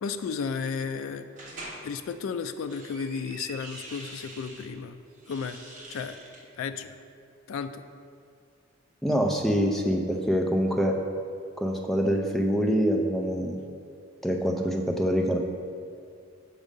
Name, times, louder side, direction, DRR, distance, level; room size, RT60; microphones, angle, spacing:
voice 1, 0.0-1.3 1.8-5.0 5.3-5.6 5.9-6.2 6.6-7.0 7.5-7.8, left 5 dB, 75° left, 9 dB, 0.3 m, -33 dB
sound 1, 1.4-1.8 2.5-4.7 5.1-6.4, right 2 dB, 40° right, 1.2 m, -44 dB
voice 2, 9.0-11.0 11.6-13.6 14.2-15.4, equal, ahead, 1 dB, 0.5 m, -25 dB
6.1 x 5.3 x 5.2 m, 2.3 s
head